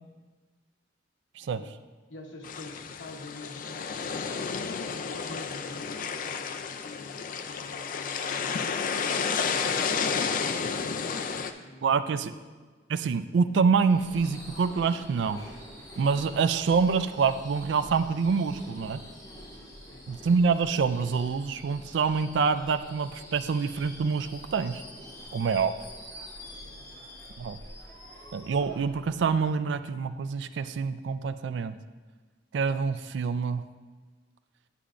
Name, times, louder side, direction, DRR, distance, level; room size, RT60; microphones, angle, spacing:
voice 1, 1.4-1.7 2.1-10.5 10.9-12.5 19.9-20.3 26.6-27.1, left 2 dB, 90° left, 2 dB, 1.0 m, -48 dB
sound 1, 2.4-11.5, left 6 dB, 45° left, 0.4 m, -31 dB
voice 2, 11.8-12.3 12.9-15.4 16.0-19.0 20.1-24.8 25.3-25.7 27.4-27.6 28.3-31.8 32.5-33.6, right 5 dB, 65° right, 12 dB, 0.3 m, -26 dB
Subway metro underground / Screech, 13.8-29.7, equal, 20° left, 1.6 m, -46 dB
9.8 x 6.8 x 2.5 m, 1.4 s
head